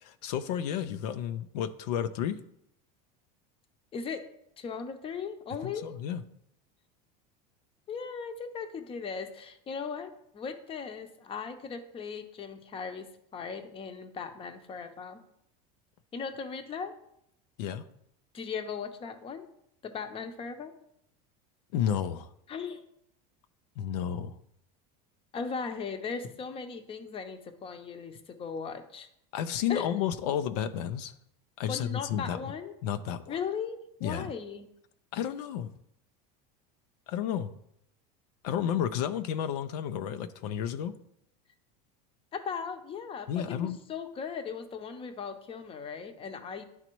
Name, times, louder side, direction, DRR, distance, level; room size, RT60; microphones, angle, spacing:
voice 1, 0.0-2.4 5.6-6.2 17.6-17.8 21.7-22.3 23.8-24.4 29.3-31.1 31.6-32.5 32.8-33.4 34.0-34.3 35.1-35.7 37.1-37.5 38.4-40.9 43.3-43.8, left 9 dB, 85° left, 10 dB, 0.5 m, -31 dB
voice 2, 3.9-4.2 4.6-5.9 7.9-13.1 13.3-15.2 16.1-16.9 18.3-19.4 19.8-20.7 22.5-22.8 25.3-29.1 29.7-29.9 31.7-32.7 33.3-34.7 42.3-46.6, left 6 dB, 25° left, 8 dB, 0.7 m, -38 dB
11.0 x 4.0 x 3.0 m, 0.75 s
supercardioid pair, 130°, 20 cm